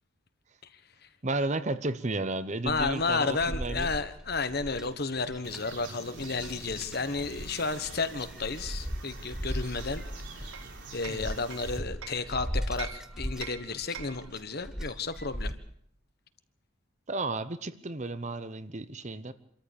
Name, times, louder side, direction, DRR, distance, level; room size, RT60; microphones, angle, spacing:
voice 1, 1.2-3.9 11.1-11.3 17.1-19.3, right 2 dB, 35° right, 13 dB, 0.9 m, -33 dB
voice 2, 2.6-10.0 10.4-10.5 10.9-15.5, left 4 dB, 50° left, 11 dB, 1.3 m, -32 dB
sound 1, 2.7-15.5, equal, 5° right, 0.9 m, -38 dB
sound 2, 5.4-11.8, right 4 dB, 55° right, 4.0 m, -47 dB
Hammer, 9.8-12.3 12.8-14.3, right 8 dB, 80° right, 1.0 m, -45 dB
26.0 x 13.5 x 8.6 m, 0.70 s
head